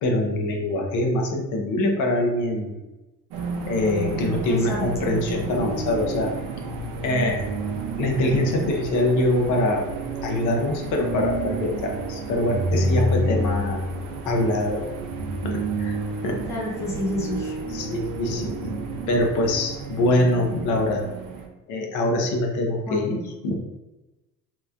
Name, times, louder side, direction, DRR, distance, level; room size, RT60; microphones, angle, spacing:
voice 1, 0.0-2.7 3.7-6.3 7.0-7.4 8.0-9.8 10.2-13.8 14.2-14.8 15.4-15.9 16.2-16.4 17.7-18.6 19.1-21.0 21.7-23.6, left 1 dB, 65° left, 1 dB, 0.7 m, -24 dB
sound 1, 3.3-21.5, right 2 dB, 70° right, 0.6 m, -30 dB
voice 2, 4.5-5.1 16.5-17.5 22.9-23.1, left 1 dB, 10° left, -3 dB, 0.5 m, -30 dB
2.9 x 2.1 x 2.4 m, 1.0 s
cardioid pair, 115°, 33 cm